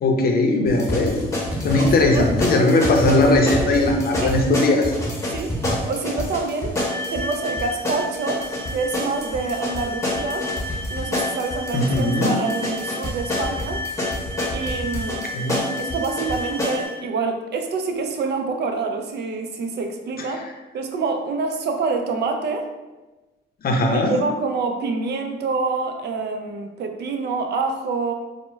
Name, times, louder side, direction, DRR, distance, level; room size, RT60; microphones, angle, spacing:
voice 1, 0.0-1.2 1.6-4.9 11.7-12.4 15.3-15.6 20.2-20.3 23.6-24.1, left 2 dB, 50° left, 2 dB, 0.6 m, -19 dB
sound 1, 0.7-16.8, left 1 dB, 15° left, 0.9 m, -28 dB
sound 2, 0.9-1.0 1.2-1.3 1.5-1.8 2.2-2.4 2.8-3.1 3.5-3.6 3.8-3.9 4.2-4.4 4.8-5.1 5.5-5.7, left 1 dB, ahead, 1.2 m, -26 dB
voice 2, 1.8-2.3 4.2-4.3 5.3-6.8 7.1-10.5 10.9-13.9 14.5-15.2 15.8-20.4 20.7-22.7 23.9-28.1, right 4 dB, 60° right, 4 dB, 0.4 m, -26 dB
sound 3, 6.8-17.0, left 1 dB, 85° right, 0.8 m, -33 dB
4.2 x 2.1 x 2.2 m, 1.1 s
cardioid pair, 90°, 20 cm